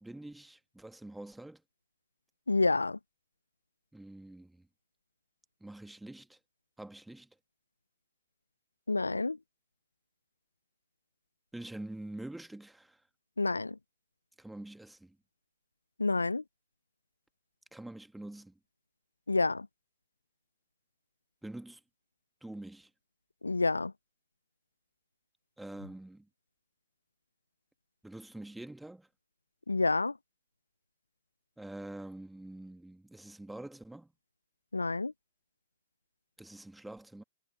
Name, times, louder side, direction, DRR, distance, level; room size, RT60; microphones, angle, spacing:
voice 1, 0.0-1.6 3.9-4.7 5.6-6.4 6.8-7.3 11.5-13.0 14.4-15.2 17.7-18.6 21.4-21.8 22.4-22.9 25.6-26.3 28.0-29.1 31.6-34.1 36.4-37.2, right 1 dB, 5° right, 1.9 m, -46 dB
voice 2, 2.5-3.0 8.9-9.4 13.4-13.8 16.0-16.4 19.3-19.7 23.4-23.9 29.7-30.1 34.7-35.1, left 3 dB, 85° left, 0.6 m, -28 dB
figure-of-eight pair, 110°, 0 cm